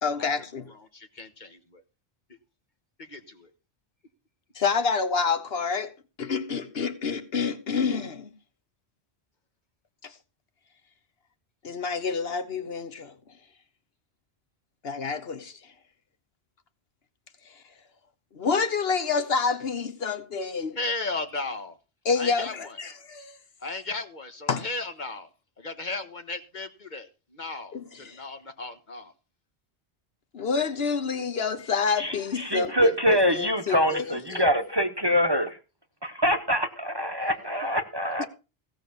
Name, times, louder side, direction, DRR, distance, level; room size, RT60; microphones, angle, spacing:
voice 1, 0.0-0.6 4.5-8.3 10.0-10.1 11.6-13.1 14.8-15.6 18.3-20.8 22.0-23.4 24.5-24.6 27.7-28.2 30.3-34.6 38.2-38.3, left 5 dB, 65° left, 1.3 m, -28 dB
voice 2, 0.7-1.8 3.0-3.5 20.7-21.8 22.1-22.8 23.6-25.3 25.6-29.1 37.2-37.5 38.1-38.2, left 3 dB, 45° left, 1.6 m, -36 dB
voice 3, 32.0-35.6 36.0-38.3, equal, 25° right, 0.9 m, -25 dB
16.5 x 5.8 x 7.0 m
omnidirectional pair, 1.1 m